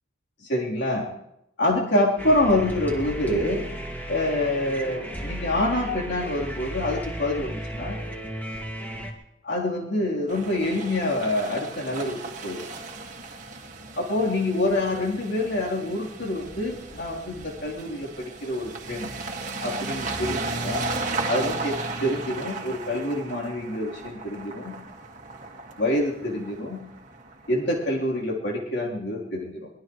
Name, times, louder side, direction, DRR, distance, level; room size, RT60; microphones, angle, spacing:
voice 1, 0.4-1.1 1.6-3.6 4.1-8.0 9.4-12.7 14.0-19.1 19.6-20.8 21.3-21.7 22.0-24.8 25.8-26.8 27.5-29.7, left 1 dB, 65° left, -2 dB, 3.6 m, -26 dB
sound 1, 2.2-9.1, equal, 10° left, 2.2 m, -34 dB
sound 2, 10.3-27.9, right 3 dB, 40° right, 1.9 m, -35 dB
23.5 x 19.5 x 3.2 m, 0.85 s
head